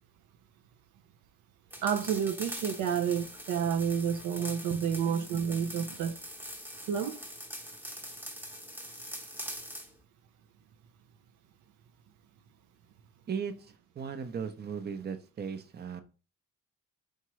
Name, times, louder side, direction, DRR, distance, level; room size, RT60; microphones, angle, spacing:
sound 1, 1.7-9.9, equal, 5° right, 0.9 m, -43 dB
voice 1, 1.8-6.2 6.9-7.2, right 7 dB, 85° right, 0.5 m, -30 dB
voice 2, 14.0-16.0, right 6 dB, 35° right, 0.6 m, -36 dB
4.7 x 2.8 x 3.1 m
cardioid pair, 90°, 30 cm